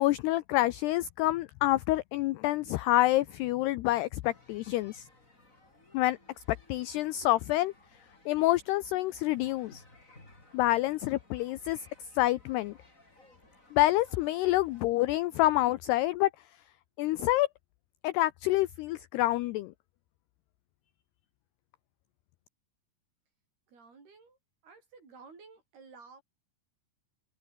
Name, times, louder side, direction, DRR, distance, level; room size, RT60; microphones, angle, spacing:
voice 1, 0.0-5.0 5.9-6.2 6.7-7.7 8.3-9.8 10.5-11.9 12.2-12.7 13.7-16.3 17.0-17.5 18.0-19.7, left 16 dB, 85° left, 2.3 m, -27 dB
sound 1, 4.2-14.8, left 2 dB, 15° left, 6.8 m, -59 dB
voice 2, 23.7-24.4 24.6-26.2, right 4 dB, 55° right, 8.2 m, -53 dB
open air
omnidirectional pair, 5.5 m